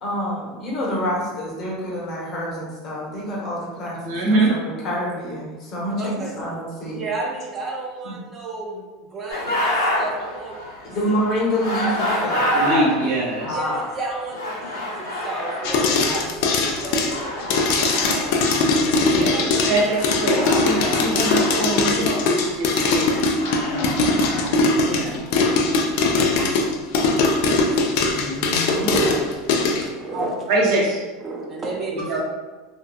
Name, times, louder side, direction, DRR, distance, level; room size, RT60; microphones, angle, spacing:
voice 1, 0.0-4.0 4.3-7.0 8.0-8.2 10.8-12.5 13.4-13.8 16.0-16.2 19.1-19.5, equal, 50° left, -4 dB, 0.9 m, -27 dB
voice 2, 4.0-4.5 12.5-13.6 19.2-19.3 19.7-23.2 23.5-23.9 24.8-25.3 28.1-28.9 30.1-31.0 32.1-32.2, right 2 dB, 70° right, -4 dB, 0.9 m, -24 dB
voice 3, 6.0-6.4 6.9-10.6 13.5-16.3 16.7-18.5 19.3-19.8 25.1-25.2 25.8-26.6 27.3-27.9 28.7-30.4 31.2-32.2, right 3 dB, 35° right, -1 dB, 0.4 m, -33 dB
sound 1, 9.3-24.5, left 1 dB, 90° left, 0.7 m, -28 dB
sound 2, 15.6-29.8, left 3 dB, 70° left, 0.3 m, -20 dB
2.7 x 2.4 x 2.2 m, 1.3 s
hypercardioid pair, 100°, 0 cm